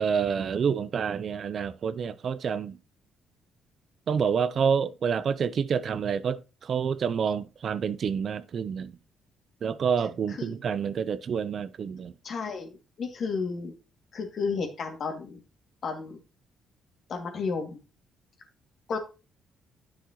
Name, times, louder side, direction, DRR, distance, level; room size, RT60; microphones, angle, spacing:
voice 1, 0.0-2.8 4.1-8.9 9.6-12.1, right 7 dB, 55° right, 0.6 m, -28 dB
voice 2, 12.2-12.7 13.0-13.7 14.1-15.4 15.8-16.2 17.1-17.8 18.9-19.0, left 5 dB, 60° left, 2.3 m, -32 dB
10.0 x 6.4 x 3.0 m
supercardioid pair, 70°, 0 cm